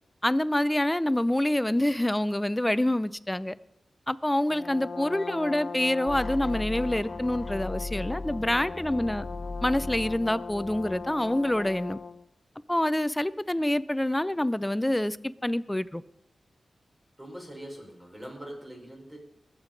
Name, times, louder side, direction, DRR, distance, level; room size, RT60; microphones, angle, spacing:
voice 1, 0.2-3.5 4.1-9.3 9.6-12.0 12.7-15.2 15.4-16.0, left 1 dB, 10° left, 0.5 m, -26 dB
Brass instrument, 4.5-12.3, left 5 dB, 70° left, 0.7 m, -39 dB
sound 1, 6.1-12.0, left 2 dB, 35° left, 1.2 m, -38 dB
voice 2, 17.2-19.2, right 1 dB, 15° right, 4.4 m, -42 dB
20.5 x 8.3 x 5.2 m
wide cardioid pair, 85°, 0 cm